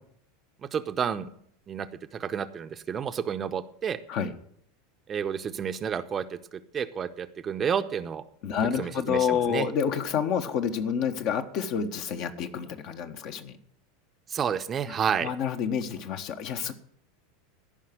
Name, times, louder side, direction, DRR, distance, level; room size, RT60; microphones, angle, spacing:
voice 1, 0.7-1.3 1.7-4.0 5.1-8.2 8.8-9.7 14.3-15.3, right 7 dB, 30° right, 9 dB, 0.8 m, -30 dB
voice 2, 8.4-13.6 15.2-16.7, left 7 dB, 50° left, 7 dB, 1.3 m, -28 dB
14.0 x 5.8 x 7.8 m, 0.64 s
figure-of-eight pair, 85°, 0 cm